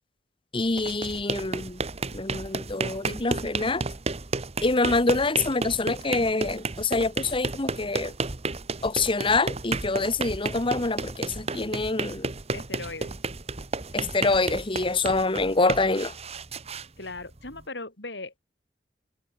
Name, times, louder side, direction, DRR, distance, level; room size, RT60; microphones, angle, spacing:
voice 1, 0.5-1.8 2.1-3.8 4.6-8.1 8.8-12.3 13.9-16.1, left 3 dB, 30° left, 1.3 m, -26 dB
sound 1, 0.6-17.6, right 3 dB, 35° right, 1.4 m, -33 dB
voice 2, 12.5-13.1 17.0-18.4, left 3 dB, 85° left, 6.6 m, -38 dB
head